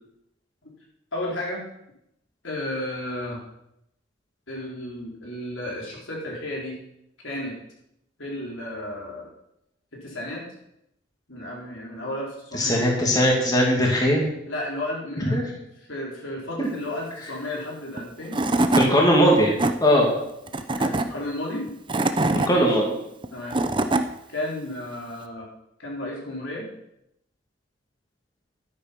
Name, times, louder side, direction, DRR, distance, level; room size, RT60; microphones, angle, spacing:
voice 1, 1.1-1.7 2.4-3.4 4.5-6.8 7.2-7.6 8.2-9.3 9.9-10.4 11.3-12.9 14.4-18.4 20.8-21.7 22.4-22.8 23.3-23.6 24.3-25.5 25.8-26.7, left 1 dB, 70° left, -2 dB, 4.2 m, -33 dB
voice 2, 12.5-14.2 15.3-15.4 16.6-16.7 18.8-19.5 19.8-20.1 22.5-23.0, equal, 20° left, -2 dB, 2.4 m, -19 dB
Tools / Wood, 18.0-18.1 18.3-18.9 19.4-19.7 20.5-21.0 21.7-22.5 23.2-24.0, right 2 dB, 25° right, 0.7 m, -22 dB
12.0 x 9.7 x 5.9 m, 0.80 s
head